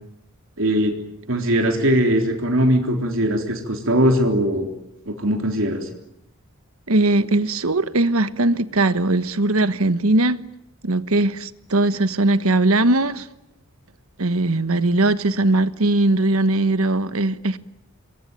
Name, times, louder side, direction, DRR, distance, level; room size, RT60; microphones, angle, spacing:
voice 1, 0.6-0.9 1.3-4.7 5.1-5.9, equal, 65° right, 3.7 m, -20 dB
voice 2, 6.9-10.4 10.8-13.3 14.2-17.6, right 2 dB, 80° right, 1.4 m, -19 dB
27.5 x 22.0 x 9.2 m
head